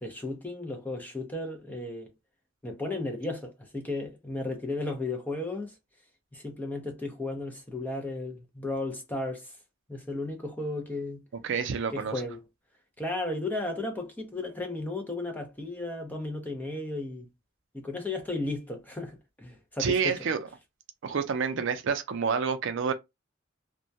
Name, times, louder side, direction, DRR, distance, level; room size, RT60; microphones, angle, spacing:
voice 1, 0.0-2.1 2.6-5.7 6.3-9.5 9.9-11.2 11.9-12.4 13.0-17.3 17.7-20.2, left 2 dB, 10° left, 0.5 m, -34 dB
voice 2, 11.4-12.1 19.8-20.4 21.0-22.9, right 6 dB, 60° right, 0.4 m, -28 dB
2.2 x 2.1 x 2.6 m
head